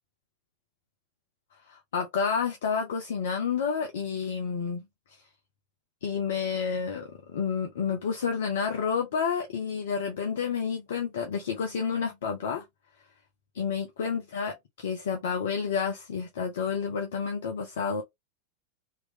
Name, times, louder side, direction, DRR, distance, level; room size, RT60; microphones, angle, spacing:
voice 1, 1.7-4.9 6.0-12.6 13.5-18.0, left 6 dB, 60° left, 0.8 m, -30 dB
3.7 x 3.0 x 2.8 m
figure-of-eight pair, 90°, 0 cm